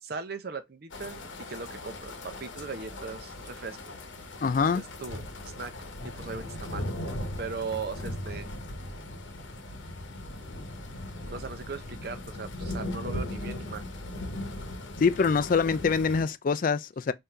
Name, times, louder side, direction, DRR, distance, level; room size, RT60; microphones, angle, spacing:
voice 1, 0.0-3.9 4.7-5.7 6.0-6.9 7.4-8.5 11.2-13.8, right 4 dB, 50° right, 0.6 m, -39 dB
sound 1, 0.9-16.2, left 1 dB, 75° left, 0.9 m, -38 dB
voice 2, 4.4-4.8 15.0-17.1, left 5 dB, 45° left, 0.3 m, -24 dB
3.7 x 2.7 x 4.3 m
head